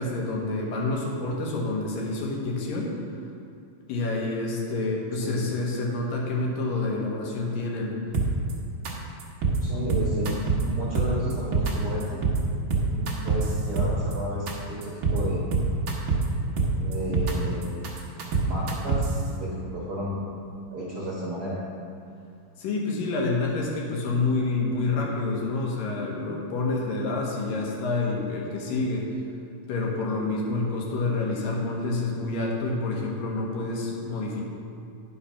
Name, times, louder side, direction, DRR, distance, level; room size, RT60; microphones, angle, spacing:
voice 1, 0.0-2.9 3.9-8.0 22.6-29.1 29.7-34.4, left 3 dB, 75° left, -2 dB, 2.9 m, -28 dB
sound 1, 8.1-8.5 8.8-8.9 9.2-9.6 9.9-10.6 10.9-11.7 12.0-12.4 12.7-14.1 14.5-14.6 14.8-15.2 15.5-16.2 16.6-17.3 17.6-19.2, right 4 dB, 80° right, 1.1 m, -25 dB
voice 2, 9.6-10.4 10.6-12.2 12.9-15.5 16.8-17.9 18.5-19.1 19.3-20.2 20.7-21.6, equal, 55° right, -7 dB, 1.1 m, -32 dB
9.9 x 5.8 x 5.7 m, 2.5 s
omnidirectional pair, 4.1 m